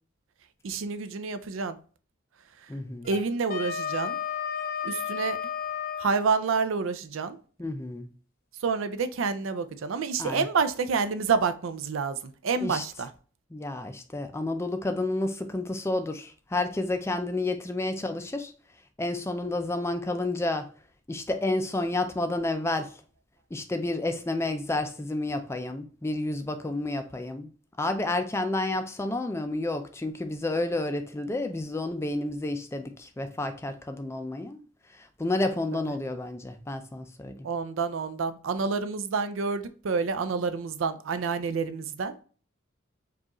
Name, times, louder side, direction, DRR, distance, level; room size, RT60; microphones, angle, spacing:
voice 1, 0.6-1.8 3.0-4.2 4.8-5.4 6.0-7.4 8.6-12.2 12.4-13.1 35.7-35.8 37.4-42.1, right 5 dB, 80° right, 0.4 m, -28 dB
voice 2, 2.7-3.1 7.6-8.1 10.2-10.5 12.6-12.8 13.5-18.5 19.0-20.7 21.1-22.9 23.5-27.5 27.8-34.6 35.0-37.4, left 2 dB, 15° left, 0.4 m, -30 dB
Wind instrument woodwind instrument, 3.0-6.1, left 7 dB, 45° left, 0.7 m, -32 dB
4.7 x 2.4 x 2.9 m
head